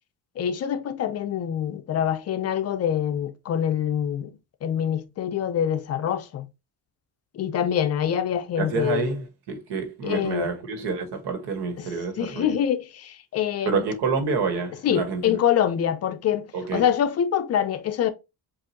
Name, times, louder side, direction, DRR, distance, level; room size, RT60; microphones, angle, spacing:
voice 1, 0.4-4.3 4.6-6.5 7.3-9.1 10.0-10.5 11.8-11.9 12.2-13.9 14.8-16.5 16.7-18.1, left 9 dB, 40° left, 0.5 m, -25 dB
voice 2, 8.6-12.6 13.6-15.4 16.5-16.8, right 4 dB, 90° right, 1.5 m, -28 dB
7.1 x 2.6 x 2.8 m
cardioid pair, 165°, 38 cm